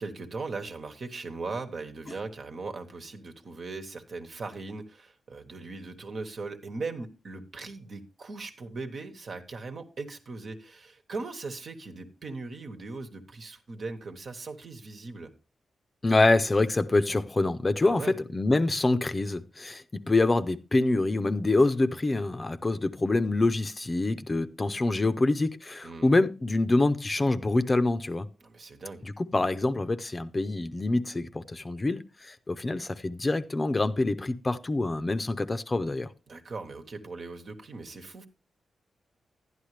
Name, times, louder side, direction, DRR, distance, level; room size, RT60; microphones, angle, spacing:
voice 1, 0.0-15.3 17.8-18.1 25.8-26.1 28.4-29.0 36.3-38.3, right 3 dB, 60° right, 1.3 m, -39 dB
voice 2, 16.0-28.2 29.0-36.1, left 2 dB, 30° left, 0.7 m, -26 dB
11.0 x 10.0 x 3.3 m
cardioid pair, 70°, 0 cm